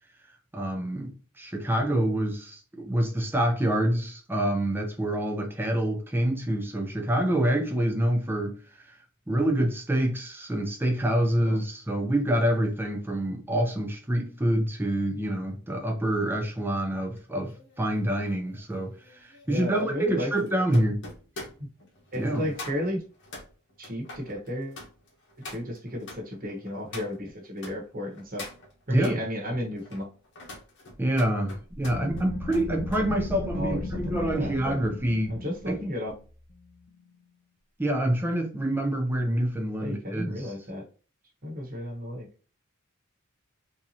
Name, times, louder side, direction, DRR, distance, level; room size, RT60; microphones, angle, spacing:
voice 1, 0.5-1.1 1.4-8.9 9.3-21.0 22.1-22.5 28.9-29.2 31.0-35.3 35.7-35.8 37.8-40.5, right 1 dB, 10° right, 0.7 m, -27 dB
sound 1, 17.1-27.8 28.1-29.2 29.7-33.1 33.4-33.7, left 2 dB, 60° left, 1.1 m, -45 dB
voice 2, 19.5-20.6 21.6-21.7 22.1-23.0 23.8-24.8 25.4-28.5 28.9-30.1 33.5-34.7 35.3-36.1 39.8-40.8 41.4-42.3, equal, 45° right, 1.1 m, -33 dB
sound 2, 31.7-37.0, left 2 dB, 35° left, 0.5 m, -36 dB
3.6 x 2.9 x 2.8 m
head